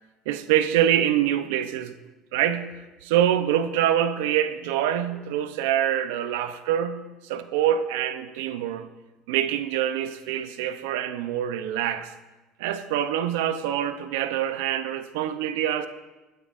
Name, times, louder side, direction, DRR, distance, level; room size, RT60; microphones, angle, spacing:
voice 1, 0.3-1.9 2.3-2.7 3.0-8.9 9.3-12.1 12.6-15.9, right 10 dB, 85° right, 10 dB, 0.7 m, -25 dB
24.5 x 8.9 x 2.6 m, 1.1 s
supercardioid pair, 95°, 0 cm